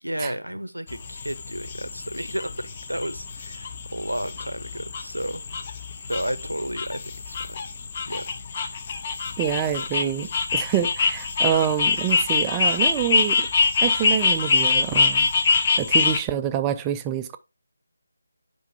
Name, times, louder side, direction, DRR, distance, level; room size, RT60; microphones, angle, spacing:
voice 1, 0.0-5.4 6.0-7.6 8.1-8.2 9.7-10.3, right 1 dB, 85° right, 0.7 m, -32 dB
sound 1, 0.9-16.2, left 4 dB, 30° left, 0.6 m, -25 dB
voice 2, 9.4-13.5 13.8-15.3 15.8-17.4, right 10 dB, 15° right, 0.4 m, -26 dB
8.0 x 5.2 x 2.7 m
figure-of-eight pair, 155°, 0 cm